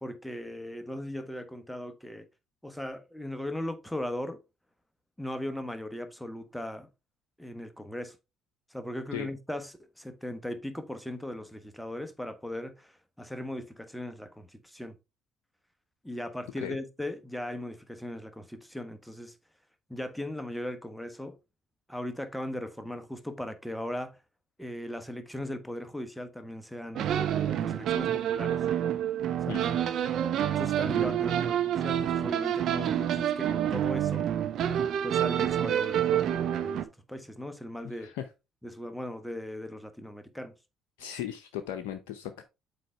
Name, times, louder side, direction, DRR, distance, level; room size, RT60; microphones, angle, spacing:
voice 1, 0.0-2.3 2.6-4.4 5.2-6.9 7.4-8.2 8.7-15.0 16.0-19.3 19.9-21.4 21.9-24.2 24.6-28.6 29.4-29.6 30.5-34.3 35.0-38.1 38.6-40.5, left 1 dB, 5° left, 1.2 m, -38 dB
sound 1, 26.9-36.8, right 10 dB, 60° right, 0.7 m, -28 dB
voice 2, 41.0-42.4, left 11 dB, 75° left, 0.6 m, -37 dB
7.6 x 4.9 x 3.4 m
hypercardioid pair, 55°, 0 cm